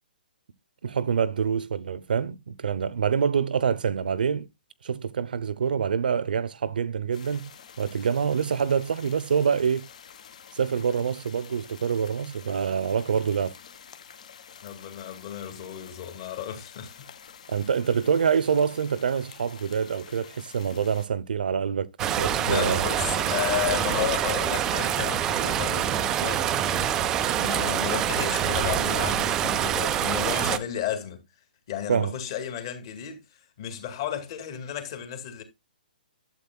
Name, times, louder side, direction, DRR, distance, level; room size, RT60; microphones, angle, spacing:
voice 1, 0.8-4.5 4.8-7.5 7.8-9.8 10.5-13.5 17.5-22.8 31.9-32.1, right 7 dB, 65° right, 0.7 m, -26 dB
sound 1, 7.1-21.1, left 8 dB, 45° left, 1.4 m, -48 dB
voice 2, 14.6-17.1 22.4-27.0 27.3-31.2 31.7-33.2 33.6-35.4, left 10 dB, 30° left, 2.1 m, -33 dB
sound 2, 22.0-30.6, right 10 dB, 10° right, 0.4 m, -26 dB
12.0 x 7.8 x 2.3 m
hypercardioid pair, 175°, 5 cm